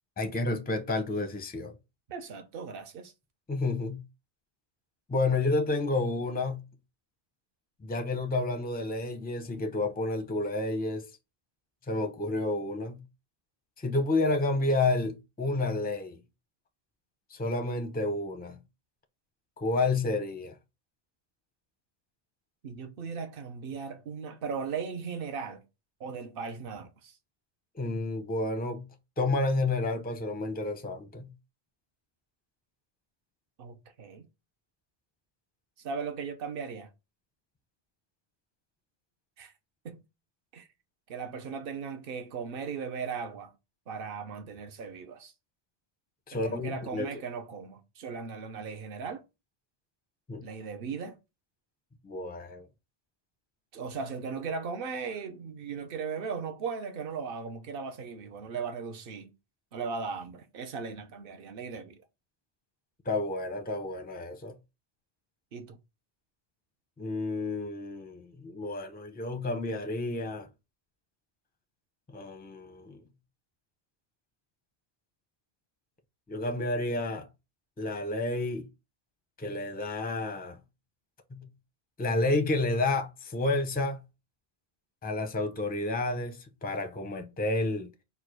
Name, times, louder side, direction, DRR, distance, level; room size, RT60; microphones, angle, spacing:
voice 1, 0.2-1.7 3.5-4.0 5.1-6.6 7.8-11.1 11.9-13.0 13.8-16.2 17.3-18.6 19.6-20.5 27.7-28.9 29.2-31.3 46.3-47.1 50.3-50.4 52.0-52.7 63.0-64.6 67.0-70.5 72.1-73.0 76.3-77.3 77.8-78.7 79.4-80.6 81.3-81.5 82.0-84.0 85.0-87.9, left 2 dB, 10° left, 0.5 m, -30 dB
voice 2, 2.1-3.1 22.6-25.6 26.0-27.1 33.6-34.3 35.8-36.9 39.4-39.5 39.8-40.0 40.5-40.7 41.1-43.5 43.9-45.3 46.4-49.2 50.4-51.2 53.7-59.3 59.7-62.0 65.5-65.8, right 5 dB, 60° right, 0.9 m, -37 dB
4.7 x 2.3 x 4.6 m
omnidirectional pair, 1.1 m